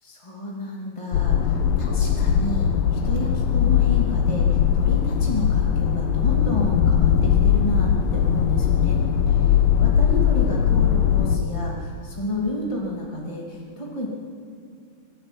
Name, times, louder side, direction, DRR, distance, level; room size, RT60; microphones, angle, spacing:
voice 1, 0.0-9.0 9.3-14.1, left 1 dB, 10° left, -3 dB, 1.7 m, -31 dB
sound 1, 1.1-11.4, left 8 dB, 70° left, 2.6 m, -20 dB
24.5 x 14.0 x 9.1 m, 2.4 s
omnidirectional pair, 4.6 m